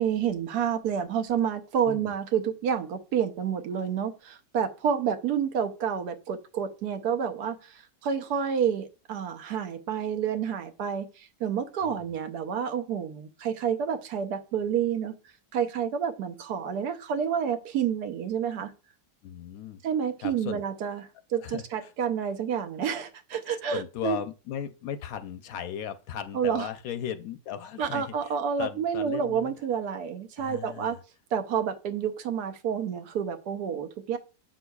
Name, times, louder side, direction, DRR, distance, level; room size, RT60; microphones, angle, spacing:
voice 1, 0.0-15.1 15.5-18.7 19.8-24.2 26.3-26.7 27.8-31.0 31.3-34.2, right 8 dB, 80° right, 1.3 m, -29 dB
voice 2, 19.2-19.8 20.2-20.6 21.4-21.9 23.7-29.5 30.4-31.0, left 9 dB, 70° left, 0.9 m, -37 dB
7.3 x 6.2 x 2.3 m
omnidirectional pair, 1.7 m